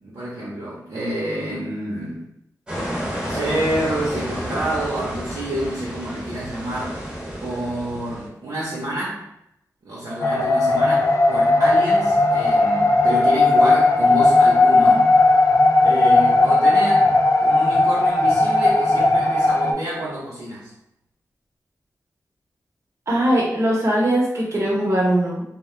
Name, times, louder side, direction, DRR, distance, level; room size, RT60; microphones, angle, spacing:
voice 1, 0.0-2.3 3.3-7.0 7.4-9.2 9.8-15.1 15.8-17.1 17.4-20.7, right 1 dB, 80° right, -7 dB, 0.7 m, -28 dB
sound 1, 2.7-8.3, equal, 15° right, 0.8 m, -31 dB
sound 2, 10.2-19.7, left 2 dB, 50° left, 0.4 m, -16 dB
voice 2, 23.1-25.4, right 1 dB, 45° right, -5 dB, 0.8 m, -20 dB
2.2 x 2.1 x 3.0 m, 0.81 s
cardioid pair, 65°, 7 cm